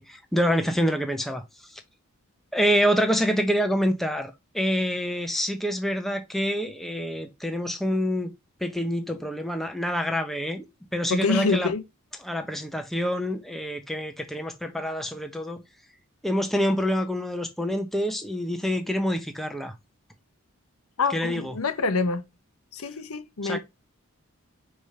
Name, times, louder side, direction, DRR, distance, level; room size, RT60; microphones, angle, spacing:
voice 1, 0.0-1.8 2.5-8.3 8.6-10.6 10.9-11.7 12.2-15.6 16.2-19.7 21.1-21.5 23.4-23.6, equal, ahead, 0.8 m, -26 dB
voice 2, 11.1-11.8 21.0-22.2 22.7-23.6, left 4 dB, 80° left, 0.8 m, -26 dB
5.0 x 3.6 x 5.5 m
head